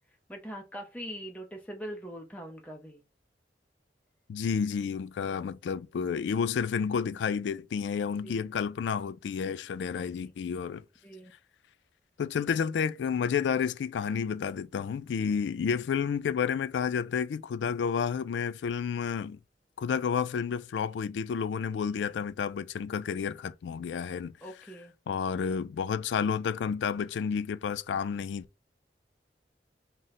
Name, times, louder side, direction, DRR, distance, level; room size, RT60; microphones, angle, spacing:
voice 1, 0.3-3.0 8.0-8.5 10.2-10.3 11.0-11.3 24.4-24.9, equal, 10° left, 0.5 m, -42 dB
voice 2, 4.3-10.8 12.2-19.4 19.8-24.4 25.1-28.4, left 6 dB, 90° left, 0.3 m, -30 dB
3.7 x 2.1 x 4.1 m
head